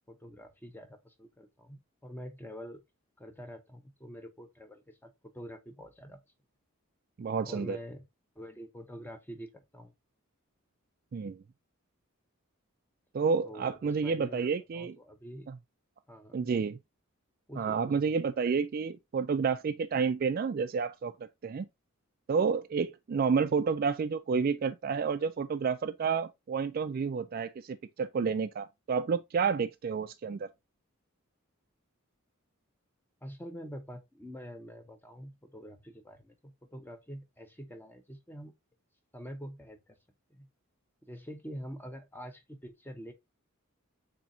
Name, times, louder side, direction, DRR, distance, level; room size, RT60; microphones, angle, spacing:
voice 1, 0.1-2.8 3.2-6.2 7.4-8.0 8.4-9.9 13.4-15.5 16.1-16.6 17.5-18.0 33.2-38.5 39.1-39.9 40.3-40.5 41.1-43.1, equal, 10° left, 0.7 m, -46 dB
voice 2, 7.2-7.8 11.1-11.4 13.1-15.0 15.5-15.6 16.3-16.8 17.6-21.1 21.4-21.7 22.3-30.5, right 5 dB, 45° right, 0.3 m, -30 dB
7.1 x 2.8 x 2.6 m
head